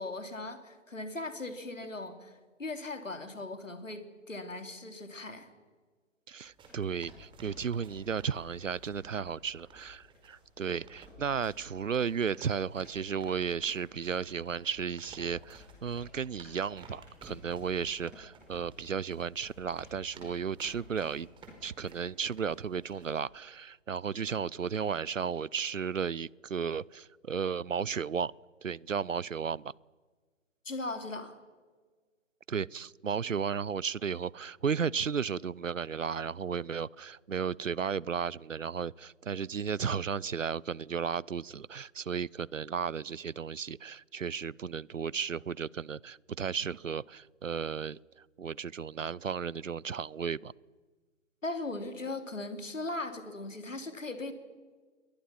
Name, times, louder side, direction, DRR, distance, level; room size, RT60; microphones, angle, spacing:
voice 1, 0.0-5.5 30.6-31.4 51.4-54.3, left 2 dB, 80° left, 7 dB, 3.5 m, -39 dB
voice 2, 6.3-21.3 21.6-28.3 28.6-29.7 32.5-48.0 48.4-50.5, right 6 dB, 85° right, 26 dB, 0.6 m, -34 dB
sound 1, 6.4-23.2, right 1 dB, 15° right, 4.8 m, -54 dB
29.0 x 22.0 x 6.0 m, 1.4 s
figure-of-eight pair, 130°, 37 cm